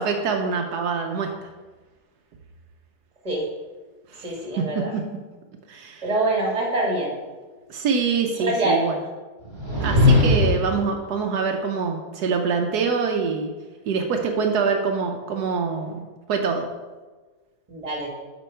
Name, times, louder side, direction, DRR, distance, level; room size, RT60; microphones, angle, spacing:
voice 1, 0.0-1.5 4.1-5.0 5.7-6.0 7.7-9.0 9.8-13.5 13.9-16.0 16.3-16.7, right 5 dB, 80° right, 3 dB, 1.2 m, -25 dB
voice 2, 4.2-4.9 6.0-7.1 8.3-8.8 17.7-18.1, right 2 dB, 25° right, -1 dB, 1.7 m, -24 dB
sound 1, 9.4-10.8, left 2 dB, 15° left, 1.9 m, -18 dB
8.1 x 5.3 x 4.5 m, 1.3 s
omnidirectional pair, 1.7 m